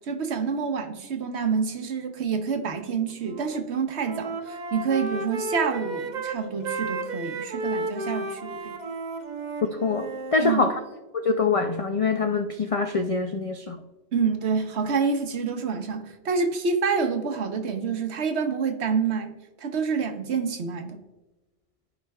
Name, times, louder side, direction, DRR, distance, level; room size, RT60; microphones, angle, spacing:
voice 1, 0.1-8.8 10.4-10.7 14.1-21.0, right 5 dB, 70° right, 6 dB, 1.1 m, -27 dB
Wind instrument woodwind instrument, 3.2-3.6 3.9-10.4, right 2 dB, 45° right, 0.8 m, -33 dB
voice 2, 9.8-10.7 11.1-13.8, left 4 dB, 65° left, 5 dB, 0.3 m, -24 dB
14.0 x 5.1 x 2.3 m, 1.1 s
omnidirectional pair, 1.2 m